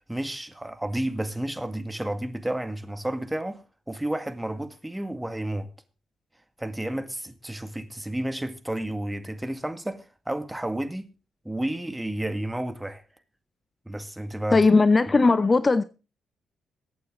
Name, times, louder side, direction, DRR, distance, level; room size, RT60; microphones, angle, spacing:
voice 1, 0.0-5.7 6.6-11.1 11.4-13.0 13.9-14.7, right 1 dB, 10° right, 2.1 m, -31 dB
voice 2, 14.5-15.8, left 3 dB, 30° left, 0.8 m, -18 dB
22.5 x 8.7 x 3.8 m
hypercardioid pair, 45°, 0 cm